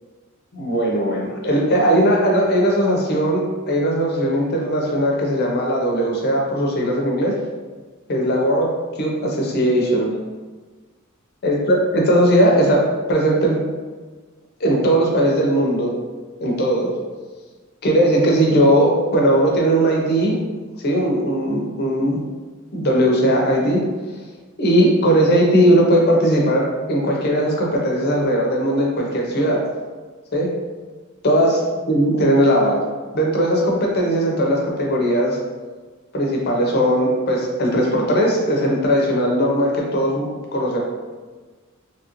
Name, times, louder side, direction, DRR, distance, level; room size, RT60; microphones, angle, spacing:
voice 1, 0.5-7.4 8.1-10.1 11.4-12.8 13.1-13.6 14.6-15.9 16.4-17.0 17.8-20.4 20.8-22.2 22.7-23.8 24.6-29.7 30.3-30.5 31.2-31.6 31.9-32.9 33.1-35.4 36.1-40.2 40.5-40.8, equal, 50° left, -1 dB, 0.6 m, -18 dB
2.9 x 2.5 x 2.9 m, 1.4 s
head